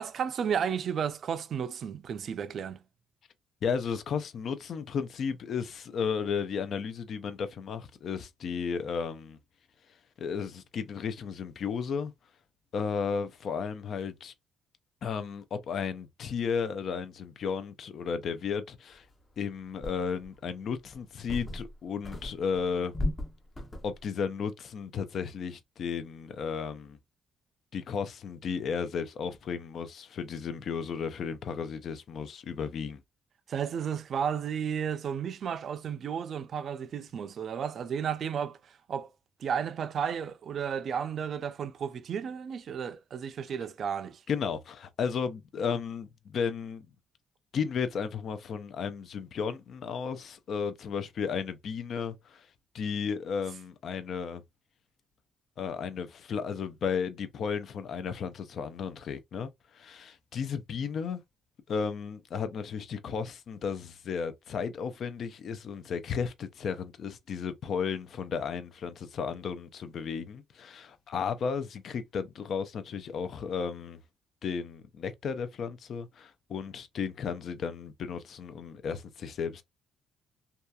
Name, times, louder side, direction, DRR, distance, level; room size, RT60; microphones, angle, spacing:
voice 1, 0.0-2.8 33.5-38.6 38.9-39.1 39.4-44.2, right 7 dB, 60° right, 0.4 m, -33 dB
voice 2, 3.6-9.4 10.2-12.1 12.7-14.3 15.0-19.1 19.4-22.9 23.8-27.0 27.7-33.0 44.3-46.9 47.5-52.5 52.7-54.4 55.6-61.2 61.7-74.0 74.4-79.6, left 6 dB, 60° left, 0.4 m, -34 dB
sound 1, 19.2-19.3 19.8-20.4 20.9-21.8 22.0-24.0, left 1 dB, 25° left, 0.7 m, -36 dB
2.7 x 2.3 x 2.2 m
cardioid pair, 90°, 0 cm